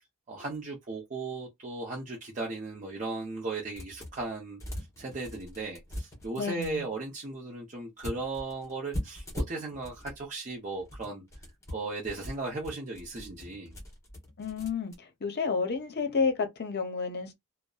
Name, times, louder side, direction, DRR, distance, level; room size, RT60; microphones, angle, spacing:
voice 1, 0.3-4.6 5.0-11.2 11.7-13.7, right 3 dB, 35° right, 0.7 m, -36 dB
sound 1, 3.8-4.3 4.6-6.7 8.0-10.2 10.7-14.9, equal, 15° left, 0.8 m, -40 dB
voice 2, 6.4-6.9 14.4-17.4, left 5 dB, 50° left, 0.7 m, -30 dB
2.6 x 2.0 x 2.3 m
head